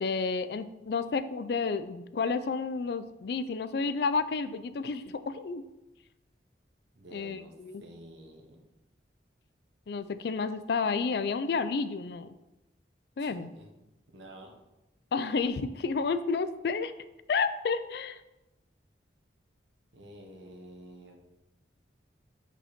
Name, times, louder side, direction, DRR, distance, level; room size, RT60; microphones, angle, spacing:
voice 1, 0.0-5.6 7.1-7.8 9.9-12.4 13.2-13.5 15.1-16.9 17.3-18.2, left 4 dB, 60° left, 12 dB, 0.4 m, -31 dB
voice 2, 6.9-7.5 7.8-8.6 13.2-13.7 14.1-14.5 19.9-21.2, right 1 dB, 85° right, 1 dB, 1.2 m, -49 dB
5.2 x 4.2 x 5.0 m, 0.97 s
head